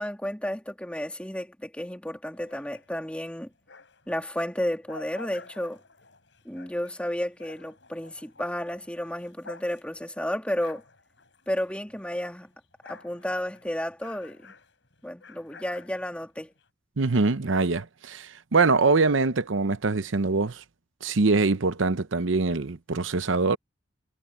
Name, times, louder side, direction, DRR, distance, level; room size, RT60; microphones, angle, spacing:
voice 1, 0.0-3.5 4.1-5.8 6.4-10.8 11.5-12.5 12.9-14.5 15.0-16.5, left 1 dB, 5° left, 2.5 m, -32 dB
sound 1, 2.3-4.2 4.6-12.2 12.4-16.7, left 4 dB, 65° left, 7.9 m, -50 dB
voice 2, 17.0-20.6 21.0-23.6, right 3 dB, 75° right, 0.8 m, -23 dB
head